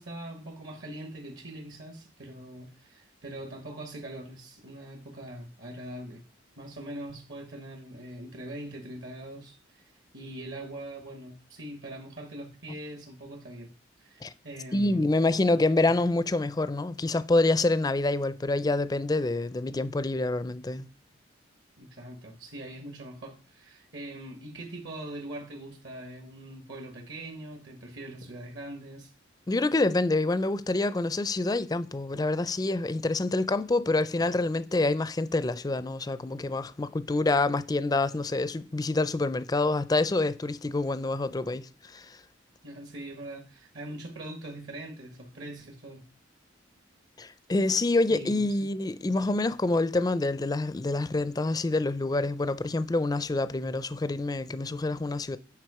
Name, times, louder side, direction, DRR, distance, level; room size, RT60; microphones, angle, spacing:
voice 1, 0.0-6.2 6.6-13.7 14.0-15.1 21.8-29.1 42.6-46.0 48.1-48.7, right 1 dB, 65° right, 1.2 m, -42 dB
voice 2, 14.7-20.9 29.5-42.2 47.2-55.4, left 2 dB, 20° left, 0.4 m, -27 dB
9.1 x 4.9 x 4.8 m
head